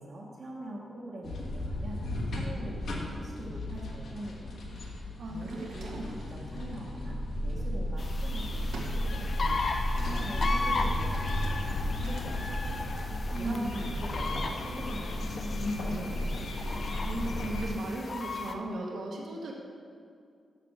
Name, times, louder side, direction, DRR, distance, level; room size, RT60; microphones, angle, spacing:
voice 1, 0.0-2.0 2.3-4.6 5.2-6.0 6.3-9.6 9.9-12.8 13.4-16.4, right 1 dB, 45° right, -5 dB, 1.1 m, -43 dB
sound 1, 1.2-17.7, left 1 dB, 65° left, 1.3 m, -34 dB
sound 2, 4.7-8.2 8.7-12.6 12.9-13.2 13.7-14.0 14.2-15.9 16.2-17.1, right 2 dB, 85° right, 1.4 m, -49 dB
voice 2, 5.2-5.6 5.8-6.0 13.3-13.8 17.0-19.5, right 1 dB, 65° right, -1 dB, 1.3 m, -36 dB
sound 3, 8.0-18.5, left 3 dB, 40° left, 0.5 m, -36 dB
6.7 x 6.6 x 6.5 m, 2.2 s
wide cardioid pair, 170°, 0 cm